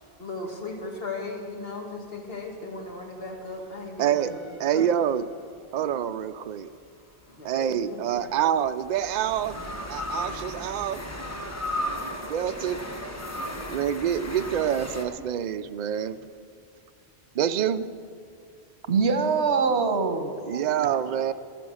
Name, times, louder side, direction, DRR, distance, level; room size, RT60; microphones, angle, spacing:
voice 1, 0.2-4.4 4.7-4.9 7.3-8.4, left 2 dB, 60° left, 0 dB, 2.2 m, -37 dB
voice 2, 4.0-4.3 4.6-5.3 5.7-6.7 7.4-9.6 9.9-11.0 12.2-12.8 13.7-16.2 17.3-17.9 20.4-21.3, right 9 dB, 55° right, 11 dB, 0.5 m, -26 dB
sound 1, 4.1-5.6 7.5-15.0, equal, 15° left, 1.0 m, -36 dB
voice 3, 18.9-20.9, right 5 dB, 80° right, 8 dB, 1.2 m, -24 dB
13.5 x 12.0 x 6.3 m, 2.3 s
omnidirectional pair, 1.1 m